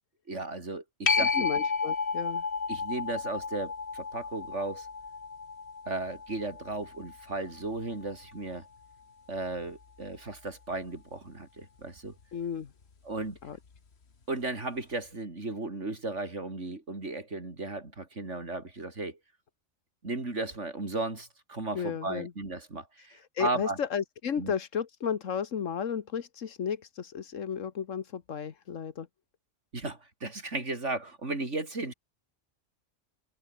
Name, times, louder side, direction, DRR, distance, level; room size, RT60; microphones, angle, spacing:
voice 1, 0.3-1.5 2.7-4.9 5.9-8.6 9.3-12.1 13.0-13.4 14.3-19.2 20.0-23.8 24.4-24.5 29.7-31.9, right 2 dB, 65° right, 4.6 m, -35 dB
voice 2, 1.1-2.5 12.3-12.7 13.4-13.6 21.7-22.3 23.0-29.1, left 7 dB, 80° left, 1.6 m, -33 dB
sound 1, 1.1-8.2 13.8-13.9, left 5 dB, 55° left, 2.0 m, -32 dB
omnidirectional pair, 1.3 m